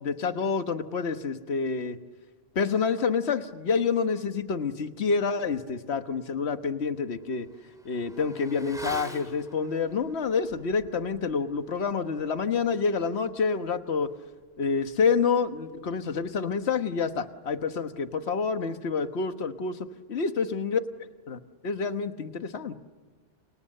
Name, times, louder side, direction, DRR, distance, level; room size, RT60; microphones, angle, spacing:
voice 1, 0.0-2.0 2.5-7.5 7.8-14.1 14.6-22.8, left 5 dB, 65° left, 9 dB, 1.5 m, -28 dB
Motorcycle / Accelerating revving vroom, 5.7-5.8 6.2-16.2 16.4-16.6, equal, 5° right, 2.1 m, -47 dB
30.0 x 28.0 x 6.6 m, 1.5 s
omnidirectional pair, 1.2 m